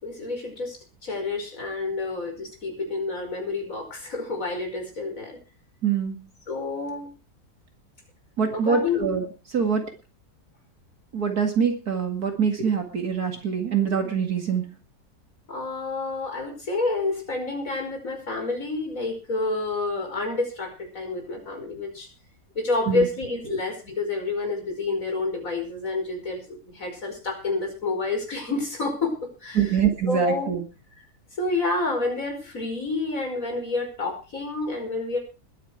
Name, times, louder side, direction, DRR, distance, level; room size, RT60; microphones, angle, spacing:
voice 1, 0.0-5.4 6.5-7.1 8.5-9.0 15.5-22.1 22.6-29.8 30.1-30.6 31.4-35.2, left 3 dB, 50° left, 3 dB, 5.7 m, -29 dB
voice 2, 5.8-6.2 8.4-9.8 11.1-14.7 22.9-23.1 29.5-30.6, right 7 dB, 60° right, 4 dB, 2.7 m, -24 dB
21.0 x 9.3 x 4.7 m, 0.33 s
omnidirectional pair, 1.8 m